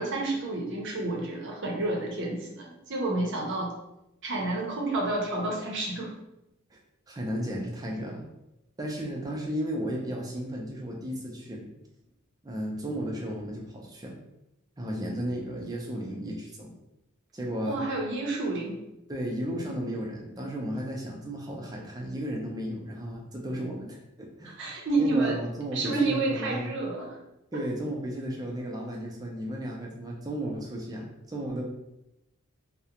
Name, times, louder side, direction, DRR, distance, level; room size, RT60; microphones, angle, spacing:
voice 1, 0.0-3.7 4.2-6.1 17.6-18.8 24.5-25.4 25.7-27.2, right 2 dB, 55° right, -1 dB, 0.6 m, -29 dB
voice 2, 7.1-8.2 8.8-11.6 12.4-14.2 14.8-16.7 17.3-17.8 19.1-24.0 24.4-24.6 25.0-26.7 27.5-31.6, equal, 15° right, -2 dB, 0.4 m, -34 dB
2.3 x 2.1 x 2.8 m, 0.88 s
head